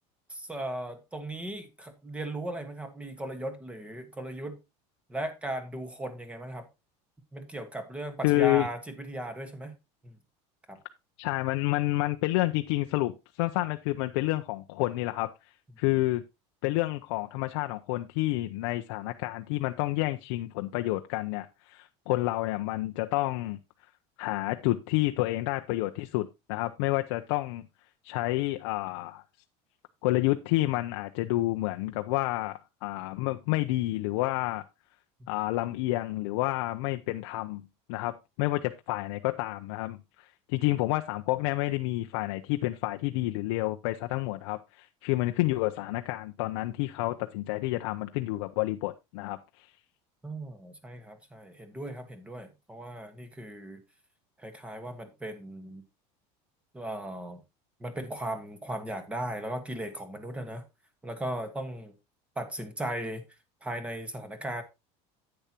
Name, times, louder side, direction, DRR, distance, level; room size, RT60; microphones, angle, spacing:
voice 1, 0.3-4.6 5.1-6.7 7.3-9.7 10.0-10.1 10.7-10.8 50.2-53.8 54.4-55.8 56.7-57.4 57.8-60.6 61.0-61.9 62.3-63.2 63.6-64.6, right 1 dB, 10° right, 1.4 m, -37 dB
voice 2, 8.2-8.7 11.2-16.2 16.6-23.6 24.2-27.6 28.0-29.2 30.0-34.6 35.3-37.6 37.9-49.7, left 18 dB, 80° left, 0.6 m, -29 dB
10.5 x 8.8 x 2.9 m
cardioid pair, 150°, 14 cm